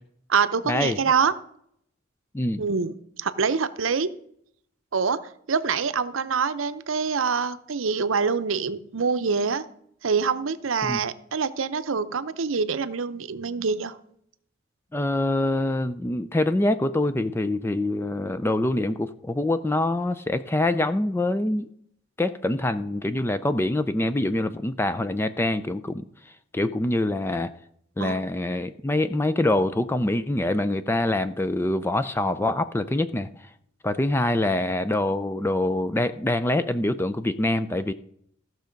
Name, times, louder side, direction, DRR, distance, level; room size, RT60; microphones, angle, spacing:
voice 1, 0.3-1.3 2.6-2.9 3.2-4.1 4.9-5.2 5.5-9.6 10.0-14.0 28.0-28.2, right 5 dB, 80° right, 13 dB, 0.7 m, -25 dB
voice 2, 14.9-21.7 22.2-27.5 28.0-33.5 33.8-37.9, left 1 dB, 10° left, 12 dB, 0.4 m, -25 dB
14.5 x 6.3 x 5.1 m, 0.70 s
head